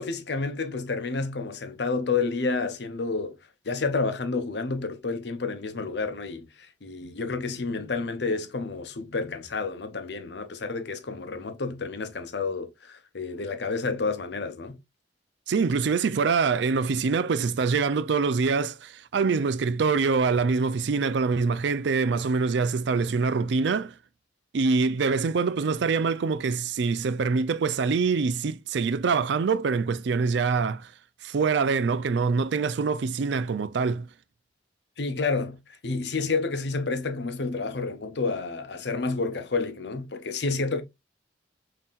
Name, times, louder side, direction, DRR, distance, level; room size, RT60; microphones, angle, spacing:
voice 1, 0.0-3.4 3.7-6.5 6.8-14.8 35.0-35.6 35.8-40.8, left 4 dB, 65° left, 0.7 m, -30 dB
voice 2, 15.5-23.9 24.5-30.9 31.2-34.1, right 4 dB, 70° right, 0.4 m, -25 dB
5.5 x 2.8 x 2.4 m
head